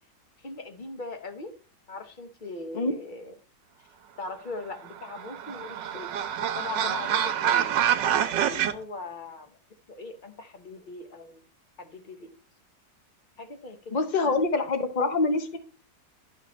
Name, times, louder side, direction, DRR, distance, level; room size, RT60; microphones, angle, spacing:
voice 1, 0.4-1.5 1.9-3.3 4.2-6.1 6.6-7.7 8.5-9.5 9.9-11.4 11.8-12.3 13.4-13.9 14.2-14.7, left 3 dB, 40° left, 6 dB, 0.8 m, -40 dB
sound 1, 4.8-8.7, right 9 dB, 80° right, 1.4 m, -26 dB
voice 2, 13.9-15.6, left 3 dB, 85° left, 7 dB, 0.4 m, -25 dB
11.0 x 6.4 x 3.1 m, 0.37 s
omnidirectional pair, 2.0 m